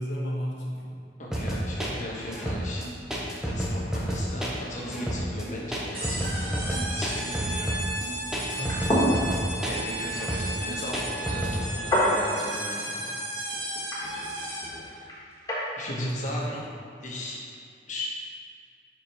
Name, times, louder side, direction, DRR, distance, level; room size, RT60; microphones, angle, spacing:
voice 1, 0.0-1.0 8.5-9.6 15.9-16.6, equal, 90° left, -3 dB, 1.2 m, -33 dB
voice 2, 1.2-2.8 3.4-7.5 9.5-13.1 14.8-15.2 15.8-16.6 17.0-17.4 17.9-18.1, left 1 dB, 45° left, -4 dB, 1.3 m, -37 dB
sound 1, 1.3-11.6, right 1 dB, 5° right, 0.7 m, -30 dB
sound 2, 5.9-14.9, right 1 dB, 35° right, 1.4 m, -34 dB
sound 3, 8.5-15.7, equal, 20° left, 1.4 m, -30 dB
4.9 x 4.2 x 5.6 m, 2.3 s
head